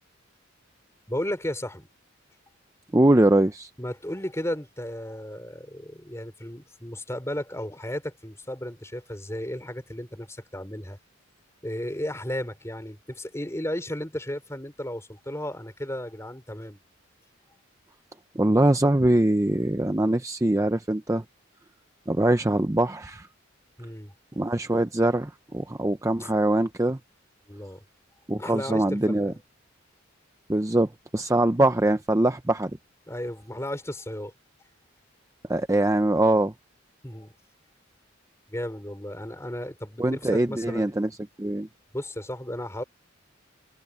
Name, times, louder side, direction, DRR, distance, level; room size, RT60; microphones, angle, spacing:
voice 1, 1.1-1.9 3.8-11.0 11.6-16.8 23.8-24.1 26.2-26.3 27.5-27.8 28.3-29.4 33.1-34.3 37.0-37.3 38.5-40.9 41.9-42.8, left 1 dB, 15° left, 4.8 m, -34 dB
voice 2, 2.9-3.7 18.4-21.2 22.1-23.3 24.4-27.0 28.3-29.3 30.5-32.7 35.5-36.5 40.0-41.1 41.4-41.7, right 1 dB, 15° right, 0.6 m, -22 dB
open air
head